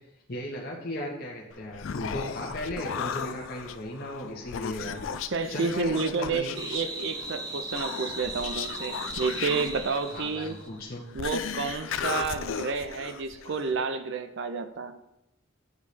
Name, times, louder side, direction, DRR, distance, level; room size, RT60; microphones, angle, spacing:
voice 1, 0.3-5.0 5.5-6.6 10.1-11.0, left 1 dB, 50° left, -2 dB, 1.0 m, -36 dB
Human voice, 1.5-13.7, left 7 dB, 70° left, 0.4 m, -36 dB
voice 2, 5.3-10.6 11.1-14.9, right 4 dB, 65° right, 9 dB, 0.6 m, -30 dB
sound 1, 6.6-10.8, right 1 dB, 20° right, 0.8 m, -38 dB
9.4 x 3.2 x 4.1 m, 0.85 s
head